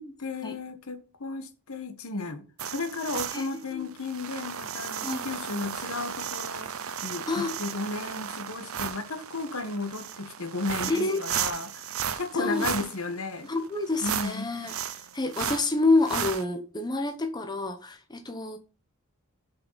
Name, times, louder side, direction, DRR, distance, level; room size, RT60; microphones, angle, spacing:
voice 1, 0.2-11.9 12.2-13.5 14.0-14.5, left 3 dB, 70° left, 1.4 m, -34 dB
sound 1, 2.6-16.4, right 8 dB, 70° right, 0.8 m, -35 dB
voice 2, 3.3-3.9 5.0-5.2 7.3-7.6 10.9-11.2 12.3-12.8 13.5-18.6, left 2 dB, 20° left, 0.9 m, -28 dB
6.5 x 5.7 x 5.7 m
head